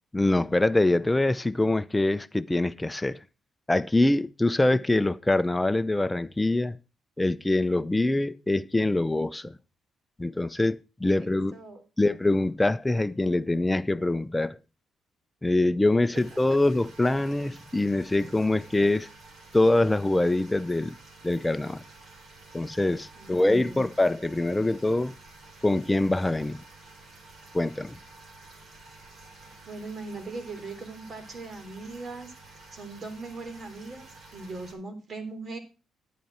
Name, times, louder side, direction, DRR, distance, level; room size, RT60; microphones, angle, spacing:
voice 1, 0.1-3.2 3.7-6.8 7.2-9.6 10.2-11.6 12.0-14.6 15.4-19.1 19.5-20.9 21.2-21.8 22.5-25.1 25.6-26.6 27.5-28.0, left 2 dB, 10° left, 0.7 m, -24 dB
voice 2, 11.0-11.8 16.1-16.2 23.1-23.9 29.4-32.3 32.7-35.6, right 3 dB, 45° right, 3.3 m, -40 dB
sound 1, 16.1-34.7, right 3 dB, 60° right, 4.2 m, -51 dB
10.5 x 9.2 x 4.3 m
cardioid pair, 90°, 0 cm